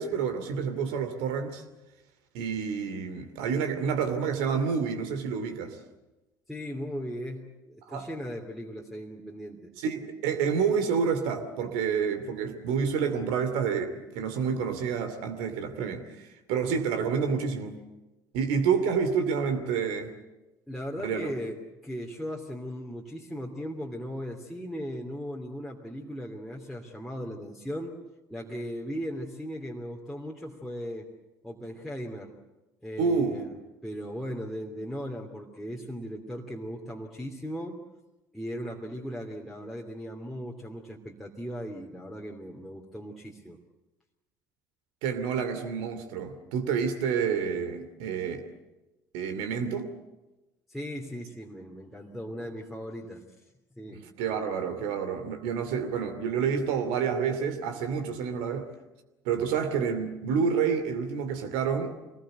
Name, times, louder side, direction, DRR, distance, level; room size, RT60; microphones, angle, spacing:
voice 1, 0.0-1.6 2.3-5.8 7.9-8.1 9.8-17.8 18.3-20.1 21.0-21.3 33.0-33.4 45.0-48.5 49.1-49.9 54.2-58.7 59.2-61.9, right 6 dB, 60° right, 2.7 m, -29 dB
voice 2, 6.5-9.7 20.7-28.0 28.3-31.1 31.4-32.3 32.8-33.5 33.8-37.8 38.3-43.6 50.7-53.2 53.8-54.1, equal, ahead, 2.9 m, -37 dB
26.5 x 20.5 x 8.0 m
figure-of-eight pair, 60°, 10 cm